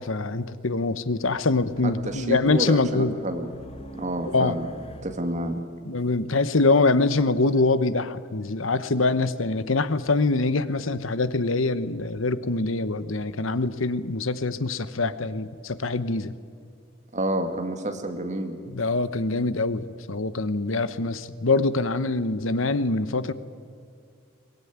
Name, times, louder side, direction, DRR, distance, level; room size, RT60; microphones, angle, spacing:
voice 1, 0.0-3.2 4.2-4.6 5.9-16.3 18.7-23.3, left 3 dB, 70° left, 14 dB, 1.0 m, -24 dB
Race car auto racing, 1.2-5.6, equal, 30° left, 1.4 m, -46 dB
voice 2, 2.1-3.5 4.0-4.7 5.0-5.6 17.1-18.6, right 1 dB, 35° right, 6 dB, 2.2 m, -29 dB
22.5 x 19.0 x 9.6 m, 2.3 s
head